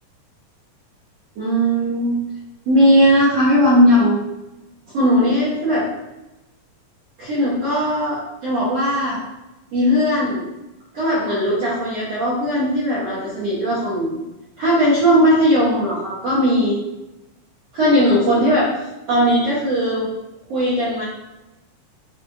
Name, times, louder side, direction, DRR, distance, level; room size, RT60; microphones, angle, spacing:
voice 1, 1.4-2.2 2.7-4.2 4.9-5.9 7.2-9.2 9.7-10.4 10.9-14.2 14.6-16.8 17.7-18.7 19.1-20.1 20.5-21.0, equal, 70° right, -9 dB, 1.5 m, -18 dB
6.1 x 2.4 x 2.6 m, 1.0 s
omnidirectional pair, 4.0 m